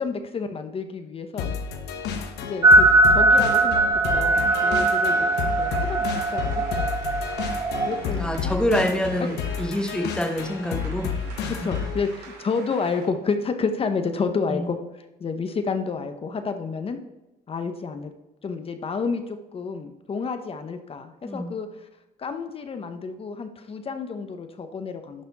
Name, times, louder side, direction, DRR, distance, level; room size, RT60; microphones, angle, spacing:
voice 1, 0.0-1.5 2.4-2.9 3.1-3.8 4.1-5.2 5.6-6.8 7.9-8.6 9.2-9.3 11.2-14.8 15.2-17.0 17.5-18.1 18.4-21.7 22.2-25.3, left 5 dB, 35° left, 8 dB, 0.8 m, -30 dB
sound 1, 1.4-12.0, left 6 dB, 75° left, 1.1 m, -31 dB
sound 2, 2.6-8.0, right 2 dB, 20° right, 0.4 m, -20 dB
sound 3, 4.3-13.1, right 4 dB, 70° right, 2.8 m, -45 dB
voice 2, 8.2-11.1 11.4-11.7 14.5-14.7 21.2-21.5, equal, 5° left, 3 dB, 1.2 m, -26 dB
11.5 x 4.2 x 4.0 m, 1.0 s
cardioid pair, 110°, 17 cm